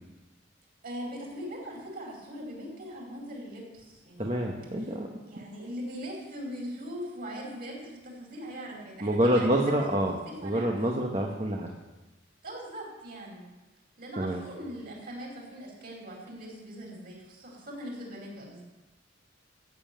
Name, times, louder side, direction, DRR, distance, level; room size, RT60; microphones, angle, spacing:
voice 1, 0.8-4.3 4.8-4.9 5.3-9.7 10.1-10.7 12.4-13.4 14.0-18.6, equal, 45° right, -2 dB, 5.0 m, -40 dB
voice 2, 4.2-5.1 9.0-11.7 14.2-14.4, right 1 dB, 30° right, 0 dB, 1.2 m, -27 dB
15.0 x 7.2 x 9.2 m, 1.1 s
head